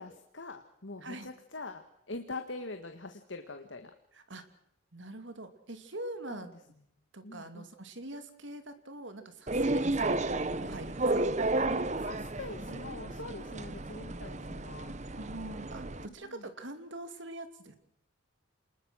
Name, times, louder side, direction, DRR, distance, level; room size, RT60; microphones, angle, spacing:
voice 1, 0.0-3.9 6.3-6.5 7.2-7.7 9.6-9.8 12.0-15.0 15.9-16.5, left 3 dB, 70° left, 7 dB, 1.7 m, -44 dB
voice 2, 4.1-4.4 4.9-6.5 7.1-11.3 15.2-17.8, right 1 dB, 70° right, 8 dB, 2.7 m, -44 dB
sound 1, 9.5-16.1, right 2 dB, 35° right, 1.0 m, -32 dB
27.5 x 20.5 x 6.4 m, 0.73 s
head